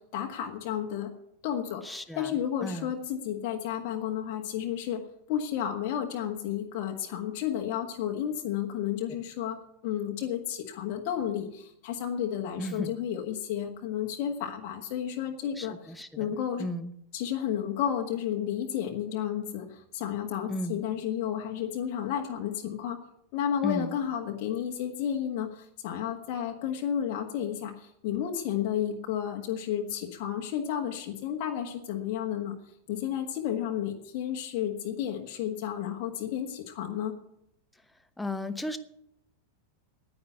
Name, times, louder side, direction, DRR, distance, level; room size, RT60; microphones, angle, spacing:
voice 1, 0.1-1.1 1.4-5.0 5.3-9.6 9.8-15.7 16.2-16.6 17.1-23.0 23.3-32.6 32.9-37.1, left 9 dB, 45° left, 1 dB, 1.5 m, -32 dB
voice 2, 1.8-2.9 12.6-12.9 15.6-16.9 20.5-20.8 23.6-24.0 38.2-38.8, left 1 dB, 5° left, 9 dB, 1.0 m, -35 dB
9.9 x 9.7 x 9.5 m, 0.76 s
figure-of-eight pair, 90°, 0 cm